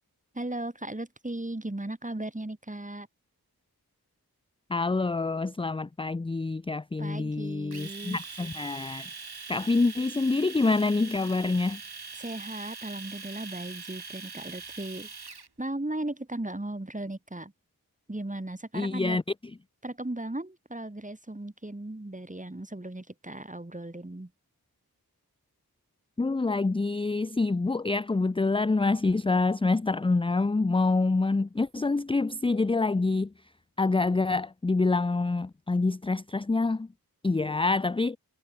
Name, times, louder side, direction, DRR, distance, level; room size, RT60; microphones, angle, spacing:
voice 1, 0.3-3.1 7.0-8.2 12.1-15.1 15.6-17.5 18.1-19.2 19.8-24.3, right 1 dB, 20° right, 2.4 m, -36 dB
voice 2, 4.7-9.0 9.5-11.8 18.7-19.2 26.2-33.3 33.8-36.9 37.2-38.2, left 3 dB, 15° left, 0.4 m, -26 dB
Domestic sounds home sounds, 7.7-15.5, right 4 dB, 85° right, 4.1 m, -42 dB
wide cardioid pair, 45°, 38 cm